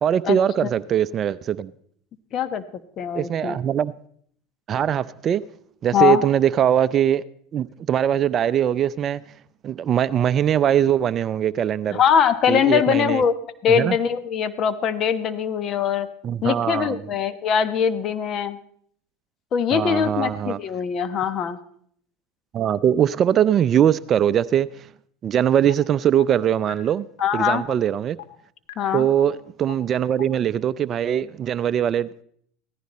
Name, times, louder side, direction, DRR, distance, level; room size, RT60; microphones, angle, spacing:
voice 1, 0.0-1.7 3.1-3.9 4.7-5.4 5.8-7.2 7.5-9.2 9.6-12.0 12.5-13.2 13.7-14.0 16.2-17.0 19.7-20.6 22.5-24.9 25.2-27.1 27.3-28.2 28.9-32.2, right 9 dB, 40° right, 0.5 m, -21 dB
voice 2, 2.3-2.6 3.0-3.6 5.9-6.2 11.9-13.3 13.6-16.1 16.4-18.6 19.5-21.6 27.2-27.6 28.8-29.1, left 8 dB, 45° left, 1.1 m, -22 dB
sound 1, 25.7-25.8 26.2-26.3 26.7-26.8 27.2-27.3 27.7-27.8 28.2-28.3 28.7-28.8 29.2-29.3 29.7-29.8 30.2-30.3, left 16 dB, 85° left, 1.3 m, -37 dB
16.5 x 14.5 x 4.2 m
hypercardioid pair, 95°, 0 cm